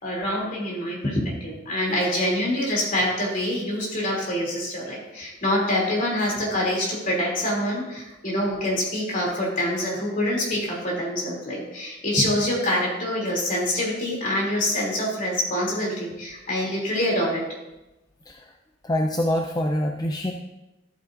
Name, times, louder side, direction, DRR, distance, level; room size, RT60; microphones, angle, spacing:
voice 1, 0.0-17.4, left 1 dB, 45° left, -3 dB, 3.1 m, -25 dB
voice 2, 18.8-20.3, left 1 dB, 20° left, 2 dB, 0.5 m, -25 dB
13.0 x 8.5 x 2.7 m, 0.99 s
head